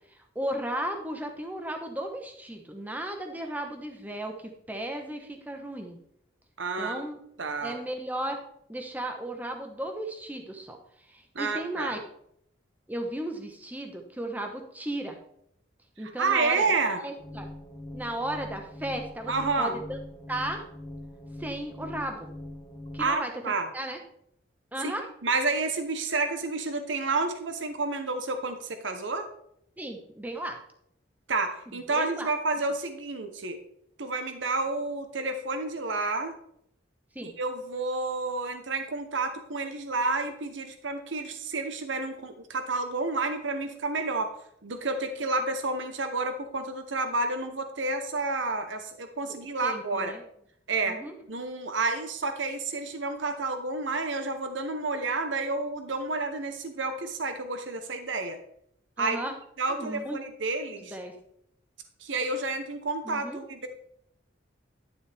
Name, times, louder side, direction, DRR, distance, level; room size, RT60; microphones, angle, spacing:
voice 1, 0.3-6.0 6.8-7.2 7.6-8.4 8.7-10.8 11.1-12.0 12.9-15.2 16.0-16.6 17.0-17.5 17.9-20.0 20.3-20.6 21.4-22.3 22.9-23.3 23.7-24.0 24.7-25.0 29.8-30.6 31.9-32.3 37.1-37.3 49.3-50.2 50.8-51.2 59.0-59.3 59.7-60.2 60.8-61.1 63.0-63.4, right 1 dB, 10° right, 4 dB, 1.1 m, -35 dB
voice 2, 6.6-7.0 7.4-7.8 11.3-12.0 16.0-17.0 19.3-19.8 23.0-23.7 24.8-24.9 25.2-29.3 31.3-33.6 34.0-36.3 37.2-44.3 44.6-50.1 50.7-51.0 51.3-58.4 59.0-59.2 59.6-61.0 62.0-63.7, right 3 dB, 80° right, 7 dB, 1.0 m, -30 dB
sound 1, 17.2-23.2, left 1 dB, 20° left, 0.8 m, -42 dB
11.0 x 7.1 x 3.5 m, 0.71 s
head